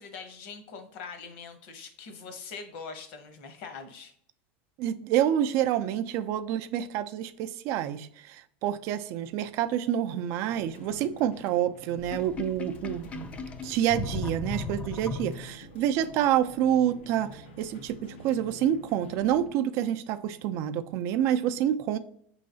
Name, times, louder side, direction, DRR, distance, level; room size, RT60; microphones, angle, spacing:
voice 1, 0.0-4.1 15.3-15.6, left 5 dB, 65° left, 7 dB, 0.9 m, -43 dB
voice 2, 4.8-13.3 13.6-22.0, right 10 dB, 50° right, 11 dB, 0.4 m, -28 dB
sound 1, 10.5-19.5, left 1 dB, 90° left, 0.7 m, -49 dB
Sink (filling or washing), 12.0-15.8, left 3 dB, 20° left, 0.4 m, -36 dB
5.5 x 3.1 x 2.6 m, 0.66 s
supercardioid pair, 135°, 6 cm